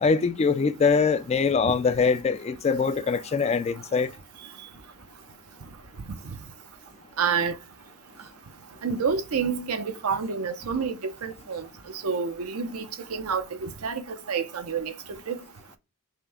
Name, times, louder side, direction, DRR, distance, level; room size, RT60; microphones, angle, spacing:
voice 1, 0.0-4.1, left 5 dB, 30° left, 0.3 m, -23 dB
voice 2, 7.2-7.5 8.8-11.6 12.0-12.8 13.1-15.4, right 6 dB, 70° right, 0.6 m, -28 dB
5.7 x 2.1 x 3.4 m
head